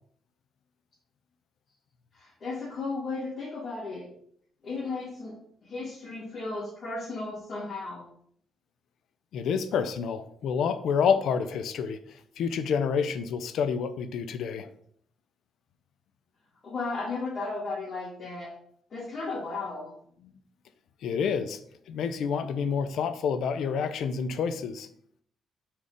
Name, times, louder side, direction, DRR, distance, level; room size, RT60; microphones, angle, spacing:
voice 1, 2.1-4.1 4.6-8.0 16.6-18.5 18.9-19.9, left 3 dB, 45° left, -9 dB, 2.9 m, -35 dB
voice 2, 9.3-12.0 12.4-14.7 21.0-21.6 21.9-24.9, left 6 dB, 75° left, 10 dB, 0.6 m, -28 dB
4.8 x 4.4 x 5.1 m, 0.65 s
cardioid pair, 90°, 0 cm